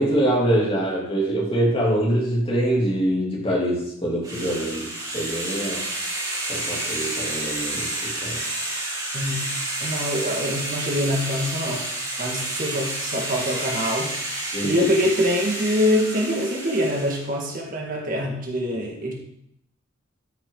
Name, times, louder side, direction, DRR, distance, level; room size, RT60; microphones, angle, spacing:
voice 1, 0.0-5.9 6.5-8.4 14.5-14.8, right 1 dB, 25° left, 2.8 m, -24 dB
sound 1, 4.2-17.3, right 1 dB, 20° right, 3.9 m, -30 dB
voice 2, 9.1-9.5 9.8-11.9 12.2-14.1 14.6-19.1, equal, 40° right, 1.8 m, -24 dB
13.0 x 6.6 x 3.9 m
head